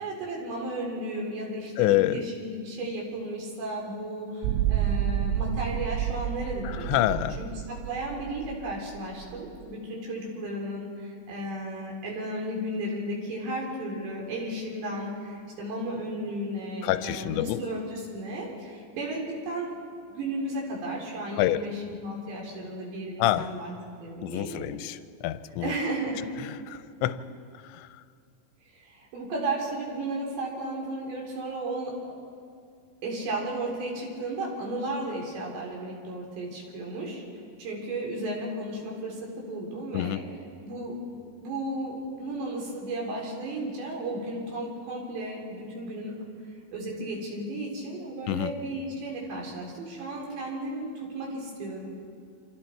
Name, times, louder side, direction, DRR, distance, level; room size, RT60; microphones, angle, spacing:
voice 1, 0.0-19.8 20.1-24.6 25.6-26.2 28.7-32.0 33.0-37.2 37.6-40.2 40.6-41.0 41.4-46.1 46.7-51.9, right 1 dB, 65° right, -2 dB, 6.1 m, -34 dB
voice 2, 1.8-2.2 6.6-7.4 16.8-17.6 21.4-21.6 23.2-23.5 24.2-25.7 26.4-27.2 27.6-27.9 39.9-40.2 48.3-48.5, left 15 dB, 80° left, 12 dB, 2.8 m, -27 dB
sound 1, 4.4-9.6, right 11 dB, 90° right, 3.2 m, -30 dB
28.5 x 26.0 x 4.6 m, 2.3 s
omnidirectional pair, 5.5 m